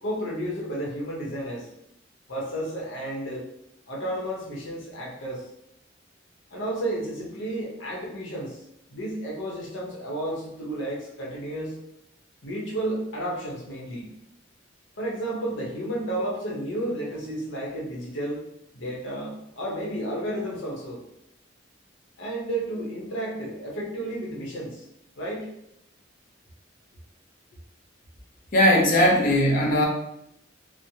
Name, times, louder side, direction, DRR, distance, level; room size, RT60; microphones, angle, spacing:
voice 1, 0.0-1.7 2.3-3.5 3.9-5.4 6.5-8.6 8.9-11.8 12.4-14.1 15.0-18.4 18.7-21.0 22.2-24.8 25.2-25.5, right 1 dB, 75° left, -3 dB, 0.9 m, -32 dB
voice 2, 28.5-29.8, equal, 45° left, -1 dB, 0.7 m, -19 dB
3.1 x 2.1 x 2.7 m, 0.78 s
head